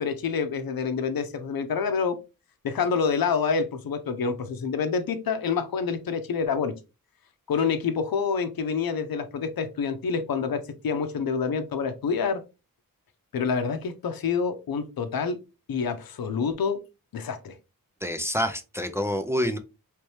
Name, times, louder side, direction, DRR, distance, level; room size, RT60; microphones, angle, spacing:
voice 1, 0.0-2.2 2.6-6.7 7.5-12.4 13.3-15.4 15.7-16.8 17.1-17.5, left 5 dB, 85° left, 0.7 m, -27 dB
voice 2, 18.0-19.6, equal, 10° right, 0.4 m, -27 dB
3.3 x 3.2 x 3.0 m
wide cardioid pair, 100°, 35 cm